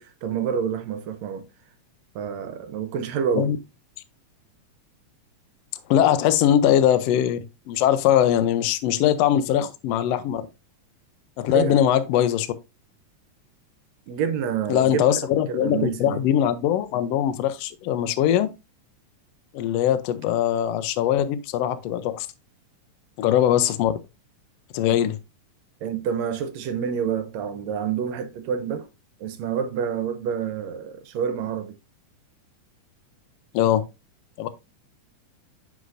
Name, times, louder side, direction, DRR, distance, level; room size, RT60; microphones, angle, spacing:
voice 1, 0.0-1.5 2.1-3.5 11.5-11.8 14.1-15.2 15.5-16.2 25.8-28.9 29.2-31.8, right 7 dB, 75° right, 1.7 m, -28 dB
voice 2, 5.9-7.4 7.7-10.4 11.4-12.5 14.7-18.5 19.5-22.3 23.2-23.9 24.7-25.2 33.5-33.8 34.4-34.5, left 10 dB, 85° left, 1.4 m, -21 dB
7.7 x 6.3 x 2.5 m
omnidirectional pair, 3.7 m